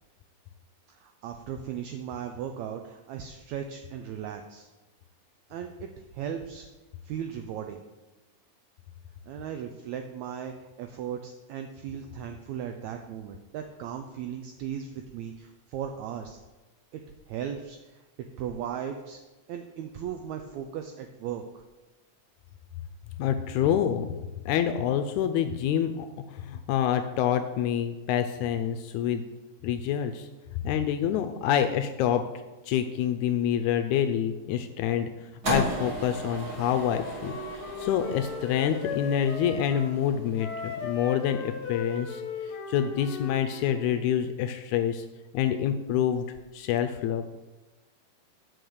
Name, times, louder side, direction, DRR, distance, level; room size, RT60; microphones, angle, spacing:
voice 1, 0.9-4.7 5.5-6.7 7.0-7.8 9.3-16.4 16.9-17.0 17.3-18.0 18.4-19.2 19.5-21.6, right 8 dB, 85° right, 5 dB, 1.6 m, -37 dB
voice 2, 23.2-24.2 24.5-29.2 29.6-30.3 30.6-32.3 32.7-35.1 35.4-42.2 42.7-45.0 45.3-46.3 46.5-47.2, left 9 dB, 80° left, 8 dB, 1.7 m, -27 dB
sound 1, 35.4-41.8, right 1 dB, 35° right, 2.1 m, -36 dB
Wind instrument woodwind instrument, 36.9-39.9 40.4-43.8, left 5 dB, 60° left, 1.5 m, -37 dB
7.7 x 5.3 x 6.5 m, 1.1 s
omnidirectional pair, 3.8 m